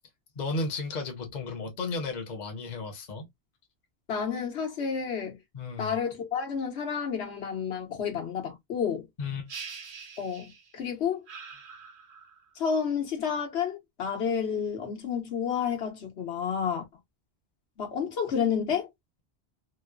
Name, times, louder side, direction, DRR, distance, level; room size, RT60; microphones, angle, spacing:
voice 1, 0.4-3.3 5.5-6.0 9.2-9.5, left 3 dB, 45° left, 0.8 m, -34 dB
voice 2, 4.1-5.4 5.8-9.1 10.2-11.2 12.6-16.9 17.8-18.9, left 7 dB, 75° left, 1.2 m, -30 dB
sound 1, 9.5-10.8 11.3-12.5, right 5 dB, 55° right, 0.8 m, -44 dB
2.9 x 2.0 x 2.2 m
omnidirectional pair, 1.1 m